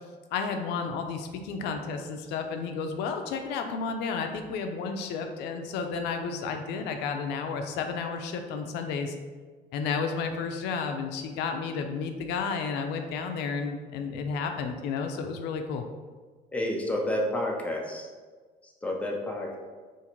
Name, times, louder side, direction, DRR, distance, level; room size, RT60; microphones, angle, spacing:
voice 1, 0.3-9.2 9.7-15.8, left 5 dB, 85° left, 5 dB, 0.4 m, -32 dB
voice 2, 16.5-18.1 18.6-19.6, left 1 dB, 10° left, -1 dB, 0.5 m, -30 dB
3.6 x 2.5 x 2.9 m, 1.4 s
cardioid pair, 110°, 17 cm